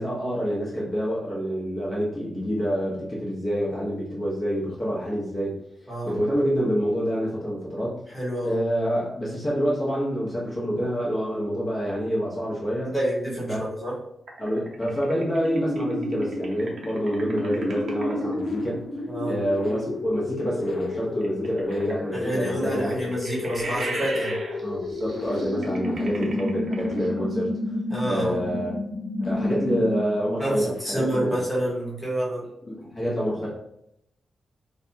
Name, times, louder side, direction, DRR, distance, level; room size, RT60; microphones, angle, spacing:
voice 1, 0.0-5.6 6.0-8.0 8.4-12.9 13.5-13.6 14.4-23.1 24.6-27.8 28.1-28.9 29.2-31.4 32.7-33.5, equal, 30° left, -7 dB, 1.0 m, -27 dB
voice 2, 5.9-6.2 8.1-8.6 12.9-13.9 19.1-19.4 22.1-24.4 27.9-28.4 30.4-32.4, right 1 dB, 5° right, -7 dB, 1.1 m, -28 dB
sound 1, 14.3-18.4 21.2-27.3, right 2 dB, 65° right, 0.6 m, -38 dB
sound 2, 15.4-30.3, left 2 dB, 70° left, 0.4 m, -31 dB
2.6 x 2.2 x 2.6 m, 0.78 s
cardioid pair, 85°, 0 cm